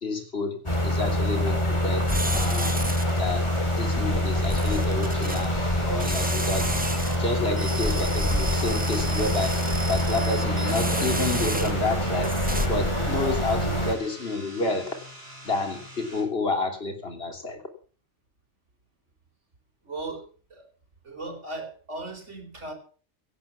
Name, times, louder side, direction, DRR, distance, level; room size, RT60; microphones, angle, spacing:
voice 1, 0.0-2.9 3.2-6.8 7.2-9.6 9.9-12.4 12.7-14.9 15.4-17.6, left 3 dB, 55° left, 4 dB, 3.3 m, -30 dB
sound 1, 0.7-14.0, equal, 25° left, 2.7 m, -25 dB
sound 2, 2.1-3.2 4.4-5.4 6.0-7.2 7.6-11.9 12.2-12.7, right 1 dB, 10° right, 0.8 m, -33 dB
sound 3, 2.2-16.2, right 1 dB, 55° right, 6.0 m, -43 dB
voice 2, 19.8-20.7 21.0-22.7, right 2 dB, 90° right, 3 dB, 4.6 m, -37 dB
17.0 x 8.7 x 7.1 m, 0.41 s
omnidirectional pair, 1.2 m